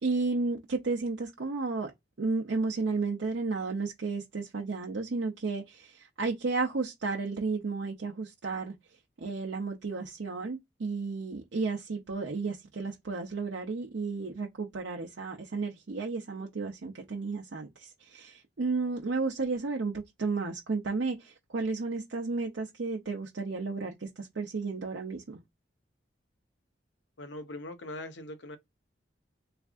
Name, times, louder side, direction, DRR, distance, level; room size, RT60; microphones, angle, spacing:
voice 1, 0.0-1.9 2.2-8.8 9.2-25.4, right 3 dB, 85° right, 0.6 m, -33 dB
voice 2, 27.2-28.6, left 1 dB, 75° left, 0.8 m, -41 dB
3.5 x 3.3 x 2.4 m
head